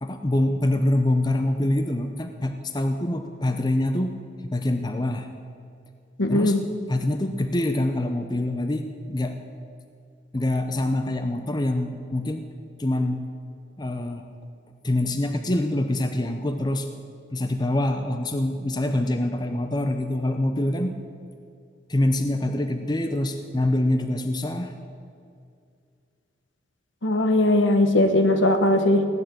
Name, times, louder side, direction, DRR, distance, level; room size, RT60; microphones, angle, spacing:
voice 1, 0.0-4.2 4.4-5.3 6.3-6.6 6.9-9.4 10.3-12.4 12.8-13.2 13.8-14.2 14.8-16.9 17.3-21.0 21.9-24.7, left 1 dB, 20° left, 6 dB, 0.7 m, -25 dB
voice 2, 6.2-6.6 27.0-29.1, left 1 dB, 70° left, 7 dB, 1.3 m, -19 dB
16.5 x 11.0 x 7.7 m, 2.3 s
head